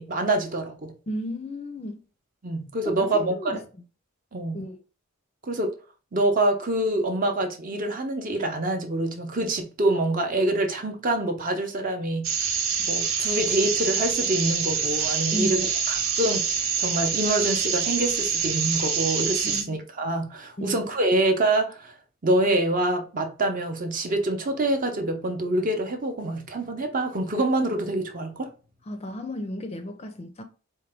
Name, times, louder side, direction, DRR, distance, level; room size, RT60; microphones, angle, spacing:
voice 1, 0.0-0.9 2.4-3.6 4.3-4.6 5.5-5.7 6.1-12.3 12.9-21.9 22.2-28.5, right 1 dB, 40° right, 0.7 m, -26 dB
voice 2, 1.1-2.0 2.9-3.6 4.5-4.8 15.3-15.6 19.4-19.8 20.6-20.8 28.9-30.4, equal, 30° left, 0.5 m, -33 dB
sound 1, 12.2-19.6, right 6 dB, 75° right, 0.8 m, -26 dB
4.5 x 2.2 x 3.4 m
head